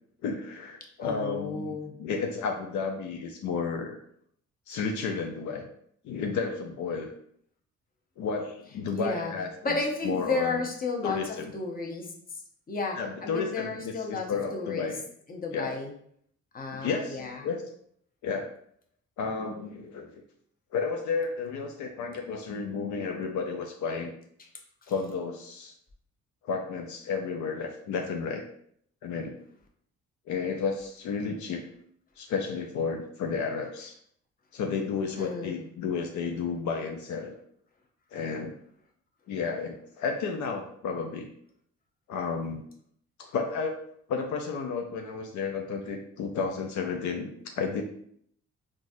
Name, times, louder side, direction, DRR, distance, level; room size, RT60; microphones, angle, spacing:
voice 1, 0.2-4.0 4.7-5.7 6.0-7.1 8.2-9.8 10.0-10.6 11.0-11.5 13.0-15.0 15.5-15.7 16.7-17.6 18.2-18.5 19.2-20.2 20.7-24.1 24.9-25.7 26.4-28.4 29.0-29.4 30.3-31.6 32.2-33.9 34.5-37.3 38.1-38.5 39.3-41.3 42.1-42.7 43.2-43.8 44.1-47.8, left 5 dB, 70° left, 3 dB, 0.5 m, -32 dB
voice 2, 1.0-1.9 8.9-9.3 9.6-12.1 12.7-14.9 15.3-15.9 16.5-17.5 35.2-35.6, left 3 dB, 30° left, 1 dB, 0.8 m, -33 dB
3.9 x 2.4 x 2.6 m, 0.66 s
cardioid pair, 90°, 30 cm